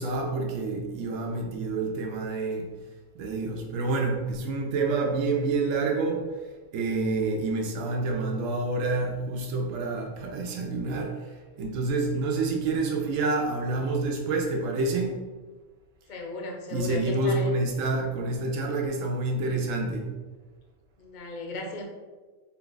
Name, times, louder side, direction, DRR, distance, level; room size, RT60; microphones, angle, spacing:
voice 1, 0.0-2.7 3.1-6.2 6.7-15.2 16.7-20.1, right 3 dB, 80° right, 1 dB, 1.0 m, -28 dB
voice 2, 16.1-17.5 21.0-21.8, left 2 dB, 50° left, 1 dB, 0.5 m, -35 dB
3.8 x 2.3 x 3.9 m, 1.3 s
omnidirectional pair, 1.3 m